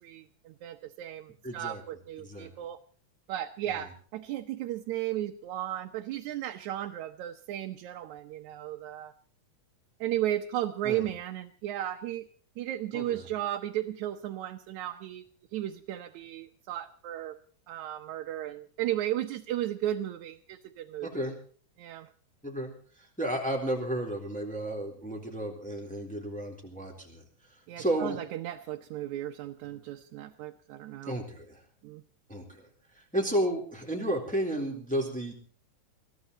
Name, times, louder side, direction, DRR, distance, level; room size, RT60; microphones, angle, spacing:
voice 1, 0.0-2.8 3.3-9.1 10.0-12.3 12.6-15.2 15.5-17.4 17.7-21.1 21.8-22.1 27.7-31.2 31.8-32.0, right 12 dB, 80° right, 4 dB, 2.2 m, -35 dB
voice 2, 1.4-1.8 2.2-2.5 10.8-11.1 12.9-13.2 21.0-21.3 22.4-22.7 23.0-27.2 27.8-28.2 31.1-31.6 32.3-32.7 32.9-35.3, right 1 dB, 5° left, 0 dB, 3.6 m, -32 dB
23.0 x 15.0 x 4.1 m, 0.43 s
omnidirectional pair, 3.3 m